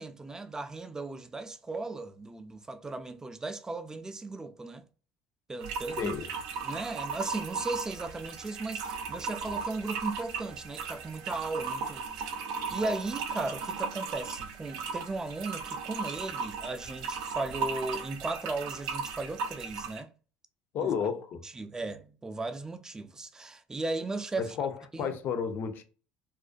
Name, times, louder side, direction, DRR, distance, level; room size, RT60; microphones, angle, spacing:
voice 1, 0.0-4.8 5.5-6.1 6.6-12.3 12.7-20.1 20.8-21.1 21.4-24.6 24.9-25.2, right 3 dB, 15° right, 0.4 m, -36 dB
sound 1, 5.6-20.0, right 5 dB, 80° right, 0.5 m, -36 dB
voice 2, 6.0-6.3 20.7-21.4 24.4-25.8, left 7 dB, 55° left, 0.5 m, -32 dB
2.4 x 2.1 x 2.4 m
supercardioid pair, 85°, 4 cm